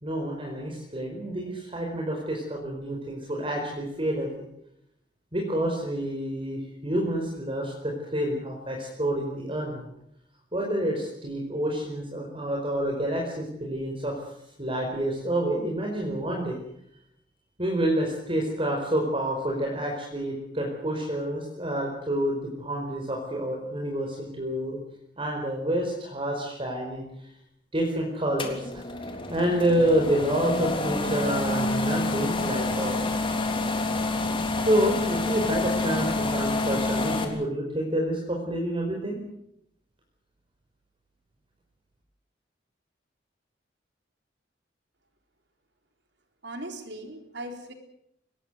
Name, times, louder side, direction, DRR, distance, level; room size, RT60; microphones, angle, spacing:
voice 1, 0.0-4.3 5.3-9.9 10.5-14.2 14.6-16.6 17.6-24.8 25.2-27.1 27.7-28.8 29.3-33.1 34.6-39.2, right 1 dB, 30° right, 0 dB, 4.8 m, -28 dB
sound 1, 28.4-37.2, left 2 dB, 30° left, 3.4 m, -28 dB
voice 2, 46.4-47.7, right 1 dB, 70° right, 5 dB, 4.0 m, -38 dB
23.5 x 20.0 x 8.1 m, 0.75 s
head